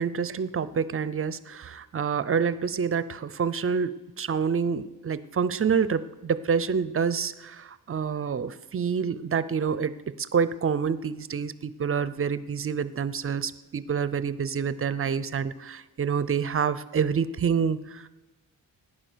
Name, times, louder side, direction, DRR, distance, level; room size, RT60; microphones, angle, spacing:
voice 1, 0.0-3.9 4.2-9.9 10.3-18.1, right 6 dB, 35° right, 16 dB, 0.5 m, -27 dB
18.0 x 10.0 x 6.2 m, 1.1 s
wide cardioid pair, 140°, 37 cm